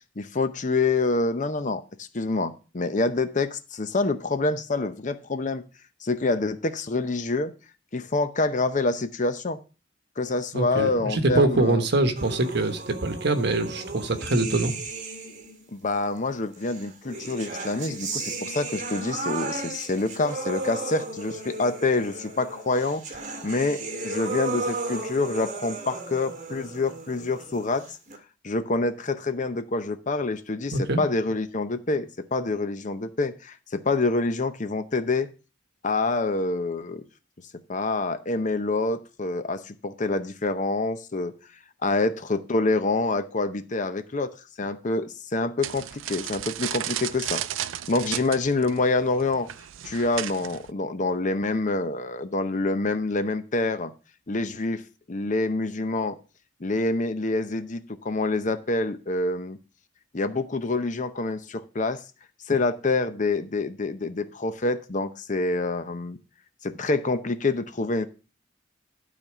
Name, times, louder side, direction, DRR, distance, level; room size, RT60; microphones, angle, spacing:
voice 1, 0.2-5.6 6.0-7.5 7.9-9.6 10.2-11.8 15.7-23.0 23.4-28.0 28.4-35.3 35.8-37.0 37.7-41.3 41.8-45.1 45.3-49.5 49.8-53.9 54.3-54.8 55.1-56.2 56.6-59.6 60.1-62.0 62.5-66.2 66.6-68.1, left 3 dB, 40° left, 0.7 m, -26 dB
voice 2, 10.5-14.8 30.7-31.0, right 2 dB, 60° right, 1.2 m, -24 dB
sound 1, 12.2-15.6 16.6-28.2, right 3 dB, 40° right, 1.9 m, -35 dB
sound 2, 45.6-50.7, right 12 dB, 90° right, 0.4 m, -34 dB
12.0 x 4.2 x 6.0 m
head